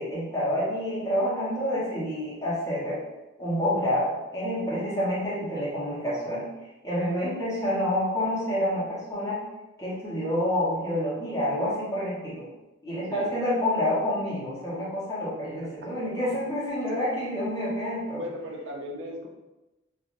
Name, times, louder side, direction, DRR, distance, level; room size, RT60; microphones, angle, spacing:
voice 1, 0.0-3.0 3.4-6.5 6.8-9.4 9.8-12.5 12.8-18.2, left 1 dB, 15° left, -9 dB, 1.1 m, -28 dB
voice 2, 18.1-19.3, equal, 80° right, 1 dB, 0.5 m, -37 dB
3.1 x 2.5 x 2.6 m, 1.0 s
head